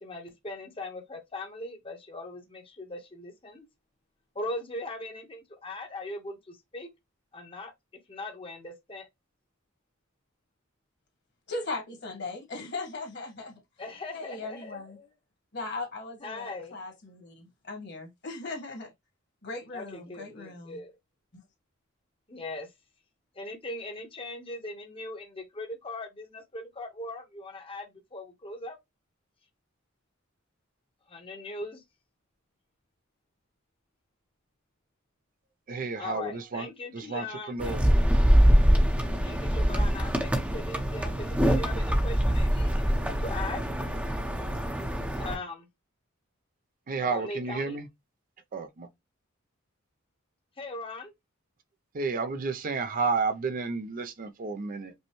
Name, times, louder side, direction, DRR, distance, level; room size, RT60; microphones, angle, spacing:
voice 1, 0.0-3.6 4.3-6.9 7.3-7.7 8.1-9.1 13.8-15.1 16.2-16.8 19.7-20.9 22.3-22.7 23.4-28.8 31.1-31.8 36.0-37.8 39.2-43.6 45.2-45.7 47.1-47.8 50.6-51.1, left 2 dB, 25° left, 0.9 m, -39 dB
voice 2, 11.5-13.6 14.1-15.0 15.5-18.9 19.4-20.8, left 3 dB, 55° left, 1.5 m, -38 dB
voice 3, 35.7-36.7 36.9-37.8 46.9-47.9 48.5-48.9 51.9-54.9, right 4 dB, 40° right, 0.4 m, -31 dB
sound 1, 37.6-45.3, equal, 5° right, 0.7 m, -24 dB
5.3 x 2.1 x 3.0 m
head